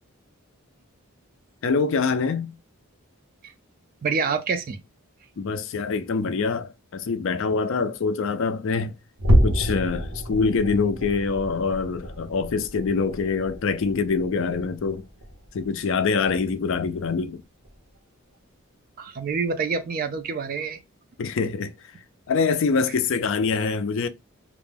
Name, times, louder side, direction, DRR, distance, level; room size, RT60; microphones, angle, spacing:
voice 1, 1.6-2.5 5.4-8.9 9.4-15.0 15.5-17.4 21.2-21.7 22.3-24.1, left 4 dB, 60° left, 0.4 m, -25 dB
voice 2, 4.0-4.8 19.0-20.8, right 5 dB, 40° right, 0.4 m, -27 dB
sound 1, 9.2-15.9 16.2-16.5 16.9-17.1 17.6-17.8, equal, 75° right, 0.9 m, -28 dB
2.5 x 2.1 x 3.2 m
head